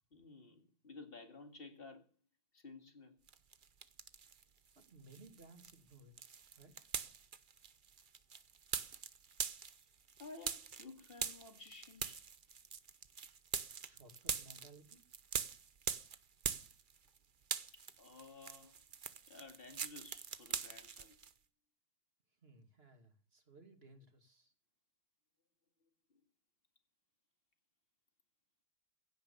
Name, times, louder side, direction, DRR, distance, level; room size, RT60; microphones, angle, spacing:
voice 1, 0.1-2.1 2.5-3.2 9.6-9.8 10.2-12.2 17.7-18.8 19.3-21.2, left 3 dB, 30° left, 2.3 m, -54 dB
sound 1, 3.3-4.4 4.8-17.2 17.4-21.3, right 6 dB, 75° right, 0.4 m, -43 dB
voice 2, 4.8-6.9 13.8-15.0 22.4-24.5, right 2 dB, 30° right, 2.5 m, -60 dB
16.5 x 9.3 x 6.9 m
omnidirectional pair, 2.2 m